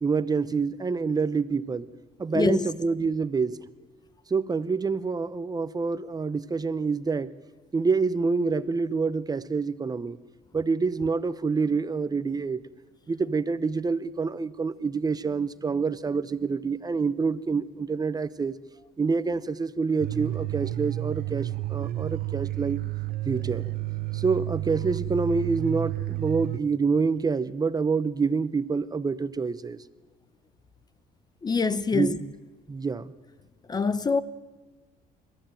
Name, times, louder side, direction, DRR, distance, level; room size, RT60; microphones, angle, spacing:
voice 1, 0.0-1.9 2.2-3.6 4.3-7.3 7.7-10.2 10.5-12.6 13.1-18.5 19.0-22.8 23.3-23.7 24.1-29.8 31.9-32.3 32.7-33.1, right 4 dB, 20° right, 0.7 m, -27 dB
voice 2, 2.3-2.7 31.4-32.2 33.7-34.2, left 4 dB, 25° left, 0.8 m, -24 dB
sound 1, 20.0-26.6, right 16 dB, 60° right, 0.7 m, -31 dB
29.5 x 15.0 x 9.0 m
cardioid pair, 110°, 17 cm